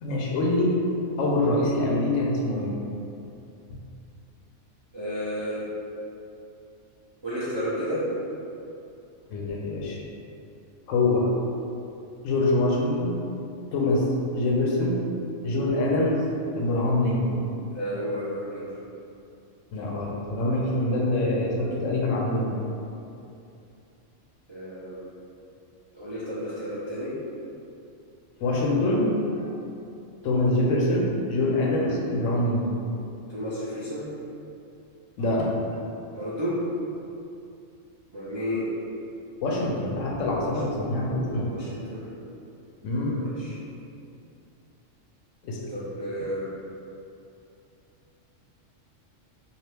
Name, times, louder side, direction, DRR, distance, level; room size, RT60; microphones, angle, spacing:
voice 1, 0.0-0.8 1.2-2.8 9.3-10.0 10.9-11.3 12.2-13.2 13.7-14.1 14.3-15.1 15.4-16.2 16.5-17.5 19.7-22.5 28.4-29.5 30.2-32.7 35.2-35.8 39.4-41.5 42.8-43.3 45.4-45.6, left 2 dB, 80° left, -2 dB, 0.9 m, -25 dB
voice 2, 4.9-5.7 7.2-8.0 17.7-18.6 24.5-25.0 25.9-27.1 33.3-34.1 36.1-36.6 38.1-38.6 40.4-40.6 41.5-42.1 43.2-43.5 45.7-46.5, equal, 40° right, -12 dB, 0.4 m, -32 dB
2.8 x 2.5 x 3.3 m, 2.7 s
omnidirectional pair, 1.3 m